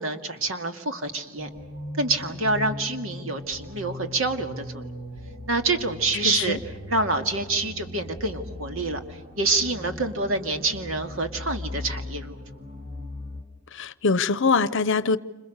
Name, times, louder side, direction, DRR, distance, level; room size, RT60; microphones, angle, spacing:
voice 1, 0.0-1.5 2.0-4.8 5.5-6.6 6.9-12.4, right 3 dB, 70° right, 2.2 m, -27 dB
sound 1, 1.4-13.4, left 1 dB, 45° right, 2.7 m, -38 dB
voice 2, 6.2-6.6 13.7-15.2, left 4 dB, 65° left, 0.8 m, -23 dB
29.5 x 27.0 x 6.6 m
head